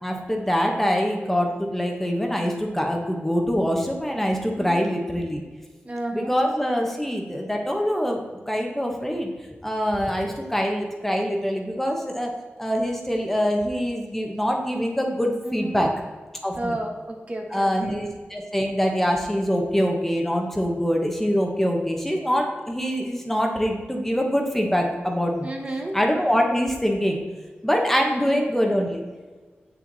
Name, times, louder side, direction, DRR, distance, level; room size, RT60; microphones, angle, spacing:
voice 1, 0.0-5.4 6.1-8.2 8.5-9.3 9.6-12.3 12.6-15.9 16.4-16.7 17.5-25.5 25.9-27.2 27.6-29.0, equal, 5° left, 1 dB, 1.1 m, -24 dB
voice 2, 4.6-4.9 5.8-6.3 15.4-15.9 16.6-18.0 25.4-26.0 28.1-28.4, right 1 dB, 35° right, 2 dB, 1.2 m, -32 dB
7.9 x 7.6 x 4.0 m, 1.4 s
wide cardioid pair, 120°, 4 cm